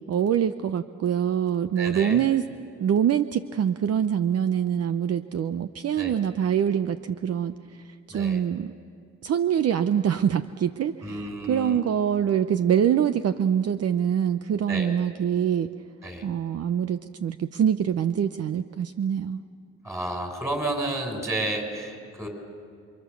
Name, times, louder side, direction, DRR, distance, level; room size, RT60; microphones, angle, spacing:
voice 1, 0.1-2.4 2.8-8.7 9.2-15.7 16.2-19.4, right 9 dB, 55° right, 11 dB, 0.8 m, -25 dB
voice 2, 1.8-2.2 5.9-6.1 8.1-8.4 11.0-11.8 14.7-14.9 16.0-16.2 19.8-22.3, right 2 dB, 10° right, 2 dB, 6.7 m, -31 dB
28.5 x 26.0 x 7.0 m, 2.4 s
cardioid pair, 90°, 30 cm